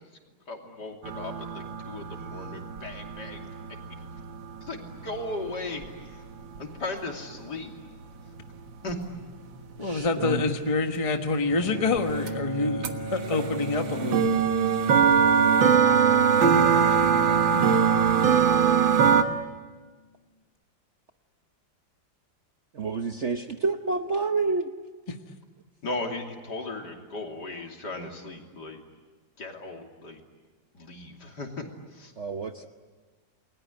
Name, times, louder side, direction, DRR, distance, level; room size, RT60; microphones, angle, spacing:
voice 1, 0.5-3.5 4.4-6.2 6.6-7.7 8.8-9.0 25.8-28.8 29.4-30.2 30.7-31.7 31.9-32.1, left 2 dB, 60° left, 2 dB, 3.5 m, -37 dB
sound 1, 1.0-6.6 8.3-8.4 8.9-9.0 9.2-10.7 12.0-12.1 12.3-12.4 12.8-19.2, right 7 dB, 75° right, 2.2 m, -23 dB
voice 2, 9.8-14.3 25.1-25.2, left 3 dB, 20° left, 5 dB, 1.2 m, -27 dB
Bowed string instrument, 11.5-19.7, right 1 dB, 25° right, 8.3 m, -35 dB
voice 3, 22.7-24.7 32.2-32.7, right 4 dB, 45° right, 6 dB, 1.0 m, -28 dB
29.5 x 21.0 x 9.5 m, 1.4 s
omnidirectional pair, 2.1 m